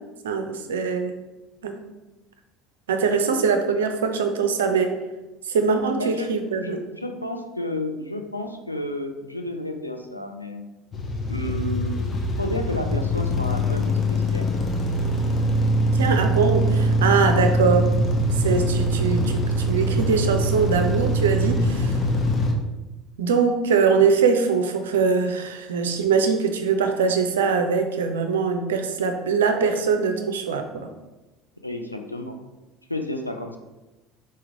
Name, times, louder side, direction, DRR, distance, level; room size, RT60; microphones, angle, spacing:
voice 1, 0.2-1.2 1.6-1.8 2.9-4.9 5.5-6.7 15.9-17.9 18.3-22.0 23.2-30.9, right 5 dB, 70° right, 6 dB, 0.4 m, -22 dB
voice 2, 6.0-6.3 6.6-10.7 11.3-14.5 31.6-32.4 32.9-33.6, left 1 dB, 90° left, 4 dB, 0.4 m, -31 dB
sound 1, 10.9-22.5, equal, 30° left, 0.7 m, -23 dB
4.3 x 3.5 x 3.1 m, 1.1 s
figure-of-eight pair, 65°, 0 cm